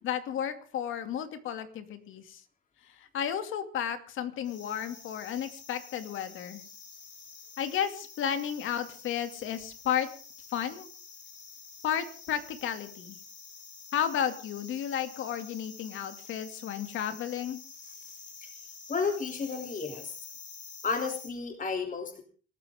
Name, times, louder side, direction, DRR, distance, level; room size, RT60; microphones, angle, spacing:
voice 1, 0.0-2.4 2.9-6.6 7.6-10.1 10.5-10.9 11.8-13.2 13.9-17.6, left 9 dB, 85° left, 8 dB, 2.6 m, -33 dB
sound 1, 4.4-21.3, left 5 dB, 65° left, 7.1 m, -48 dB
voice 2, 18.9-20.1 20.8-22.2, left 5 dB, 40° left, 4 dB, 3.2 m, -32 dB
26.5 x 13.5 x 3.7 m, 0.41 s
cardioid pair, 90°, 20 cm